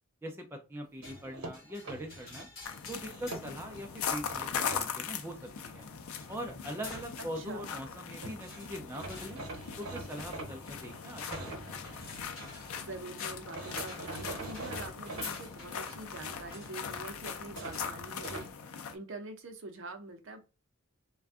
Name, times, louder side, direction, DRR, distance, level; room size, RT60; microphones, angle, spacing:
voice 1, 0.2-2.5 2.9-5.9 6.3-9.4 9.8-11.9, equal, 10° right, 0.3 m, -42 dB
sound 1, 1.0-18.5, left 2 dB, 40° left, 1.3 m, -50 dB
sound 2, 1.0-2.5 3.0-3.8 4.3-4.8 7.9-8.0 8.2-8.4 8.9-12.4 13.5-15.3 17.5-18.5, right 2 dB, 85° right, 0.8 m, -43 dB
sound 3, 2.7-18.9, left 7 dB, 80° left, 0.4 m, -40 dB
voice 2, 7.2-7.7 12.8-20.4, right 2 dB, 60° right, 0.6 m, -45 dB
2.5 x 2.2 x 3.4 m
head